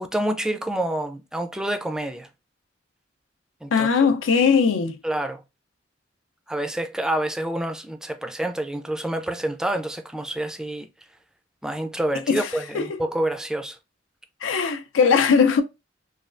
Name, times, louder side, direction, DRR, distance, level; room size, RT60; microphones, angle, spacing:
voice 1, 0.0-2.3 3.6-3.9 5.0-5.4 6.5-10.9 11.6-13.8, right 1 dB, 5° right, 0.3 m, -28 dB
voice 2, 3.7-5.0 12.3-12.5 12.7-12.8 14.4-15.6, left 5 dB, 90° left, 0.4 m, -19 dB
3.2 x 2.3 x 2.4 m
head